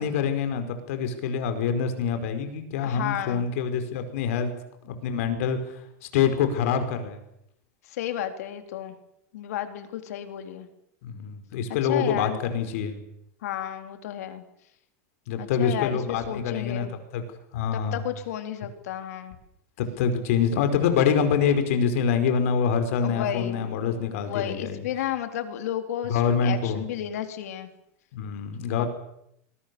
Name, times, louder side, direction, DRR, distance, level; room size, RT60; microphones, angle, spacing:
voice 1, 0.0-4.5 4.8-5.7 6.1-7.2 11.0-13.0 15.3-16.9 17.1-17.2 17.5-18.0 19.8-24.8 26.1-26.8 28.1-28.9, left 7 dB, 60° left, 8 dB, 5.0 m, -25 dB
voice 2, 2.8-3.5 7.8-9.0 9.3-10.7 11.8-12.4 13.4-14.4 15.4-16.9 17.7-19.4 23.0-23.9 24.2-27.7 28.8-28.9, left 11 dB, 75° left, 7 dB, 3.8 m, -32 dB
26.5 x 22.0 x 7.1 m, 0.76 s
supercardioid pair, 170°, 8 cm